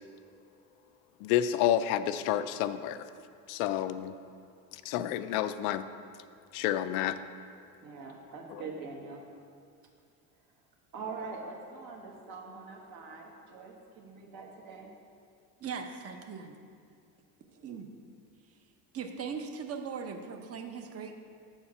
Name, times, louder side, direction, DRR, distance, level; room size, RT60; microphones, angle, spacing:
voice 1, 1.2-3.1 3.5-4.1 4.8-5.9 6.5-7.2, left 11 dB, 80° left, 12 dB, 0.5 m, -29 dB
voice 2, 7.8-9.2 10.9-14.9, right 4 dB, 60° right, 0 dB, 1.5 m, -43 dB
voice 3, 15.6-16.6 17.5-17.9 18.9-21.1, right 6 dB, 35° right, 5 dB, 0.8 m, -39 dB
7.6 x 4.4 x 5.8 m, 2.4 s
supercardioid pair, 100°, 41 cm